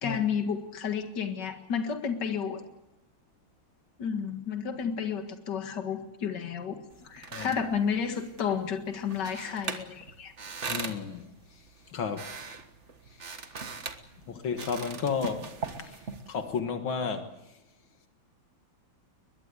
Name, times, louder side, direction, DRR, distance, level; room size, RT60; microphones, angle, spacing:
voice 1, 0.0-2.6 4.0-10.3, left 7 dB, 60° left, 2.4 m, -31 dB
sound 1, 6.9-16.6, right 4 dB, 40° right, 1.7 m, -41 dB
voice 2, 10.7-11.3 11.9-12.3 14.3-16.0 16.3-17.3, left 6 dB, 85° left, 2.4 m, -32 dB
22.5 x 21.5 x 8.3 m
omnidirectional pair, 2.1 m